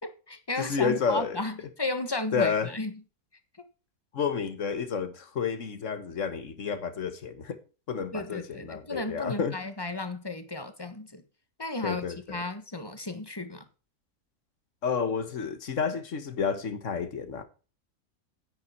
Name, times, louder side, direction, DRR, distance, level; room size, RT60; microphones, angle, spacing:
voice 1, 0.0-2.9 8.1-11.2 11.6-13.6, left 2 dB, 15° left, 1.3 m, -34 dB
voice 2, 0.6-1.4 2.3-2.7 4.1-7.6 7.9-9.6 11.8-12.4 14.8-17.4, left 6 dB, 60° left, 1.6 m, -30 dB
10.0 x 9.6 x 4.4 m
omnidirectional pair, 1.5 m